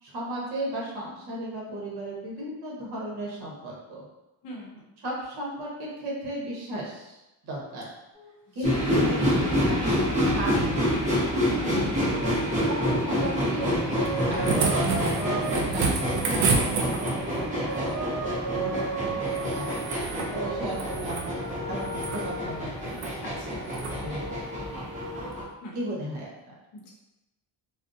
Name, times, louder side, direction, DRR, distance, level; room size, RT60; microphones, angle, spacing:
voice 1, 0.0-4.0 5.0-7.9 8.5-9.9 10.2-10.8 11.7-11.9 12.7-17.8 18.5-19.7 20.3-21.4 21.7-23.0 24.0-24.3 25.7-26.5, right 1 dB, 55° right, -4 dB, 0.9 m, -35 dB
voice 2, 4.4-4.9 8.6-8.7 11.6-11.8 18.5-19.0 20.1-20.4 23.2-23.6 25.6-25.8 26.7-26.9, left 1 dB, 60° left, -2 dB, 0.7 m, -41 dB
sound 1, 8.1-8.3 9.0-10.4 11.3-13.1 13.6-15.6 16.0-16.8 17.5-19.8 20.3-22.6 23.4-25.4, right 2 dB, 10° left, 1.2 m, -36 dB
sound 2, 8.6-25.4, equal, 15° right, 0.4 m, -28 dB
sound 3, 14.1-17.4 19.3-20.3 20.7-21.3 21.8-22.2 22.9-23.1 23.7-24.0 25.3-25.4, right 4 dB, 90° right, 0.5 m, -29 dB
2.5 x 2.0 x 2.5 m, 0.97 s
cardioid pair, 175°, 45 cm